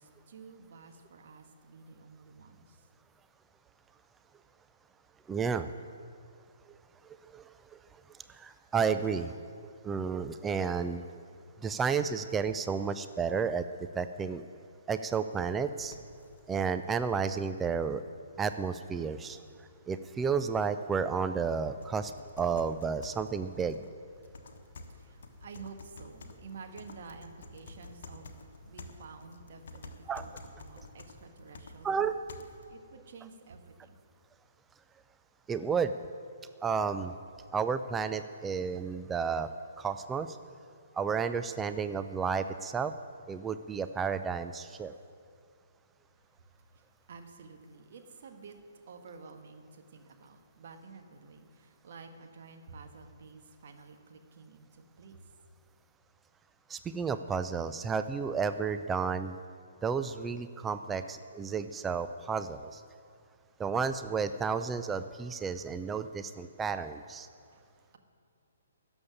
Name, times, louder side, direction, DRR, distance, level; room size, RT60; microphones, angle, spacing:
voice 1, 0.0-2.9 24.4-32.1 32.7-34.0 46.3-55.3 67.4-68.0, right 4 dB, 45° right, 5 dB, 1.4 m, -51 dB
voice 2, 5.3-5.7 7.2-7.8 8.1-11.0 11.6-13.6 14.0-14.4 14.9-15.9 16.5-18.0 18.4-22.1 22.4-23.9 30.1-30.2 31.8-32.1 35.5-35.9 36.6-37.1 37.5-39.5 39.8-40.4 40.9-42.9 43.3-44.9 56.7-59.4 59.8-62.8 63.6-67.3, right 6 dB, 10° right, 10 dB, 0.3 m, -32 dB
sound 1, 15.8-32.7, left 2 dB, 50° left, 1.3 m, -52 dB
13.0 x 7.1 x 9.9 m, 2.3 s
figure-of-eight pair, 125°, 0 cm